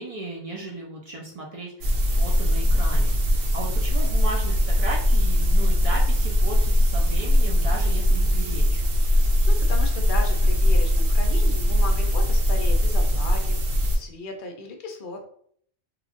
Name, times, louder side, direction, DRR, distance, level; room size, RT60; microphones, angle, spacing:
voice 1, 0.0-8.8, right 2 dB, 65° right, -2 dB, 0.3 m, -35 dB
sound 1, 1.8-14.0, equal, 85° right, 1.0 m, -20 dB
voice 2, 9.1-13.6 13.9-15.3, left 3 dB, 55° left, 2 dB, 0.6 m, -36 dB
3.0 x 2.3 x 2.5 m, 0.62 s
omnidirectional pair, 1.4 m